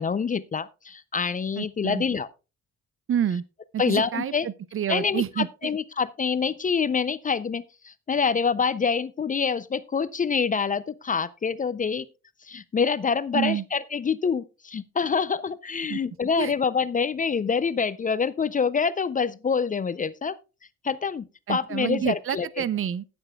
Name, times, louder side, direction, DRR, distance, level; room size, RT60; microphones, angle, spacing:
voice 1, 0.0-2.3 3.8-4.5 4.9-12.1 12.5-20.4 20.8-22.6, left 5 dB, 25° left, 0.4 m, -26 dB
voice 2, 1.6-2.0 3.1-3.4 3.7-5.5 13.3-13.6 15.9-16.0 16.4-16.5 21.5-23.1, right 9 dB, 45° right, 0.5 m, -28 dB
19.5 x 7.0 x 2.3 m
cardioid pair, 90°, 30 cm